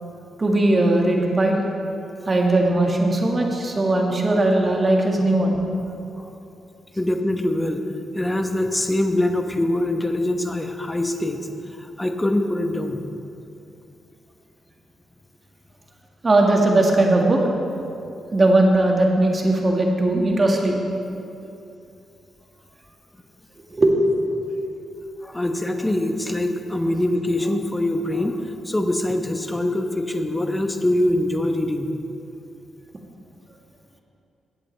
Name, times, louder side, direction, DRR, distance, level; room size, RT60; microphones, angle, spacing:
voice 1, 0.4-1.6 2.3-5.6 16.2-17.4 18.3-20.8 23.7-23.9, right 2 dB, 35° right, 1 dB, 1.7 m, -18 dB
voice 2, 7.0-7.8 8.1-11.4 11.8-13.0 25.2-31.9, left 1 dB, 15° left, 6 dB, 1.0 m, -23 dB
15.0 x 8.2 x 3.3 m, 2.7 s
supercardioid pair, 50°, 0 cm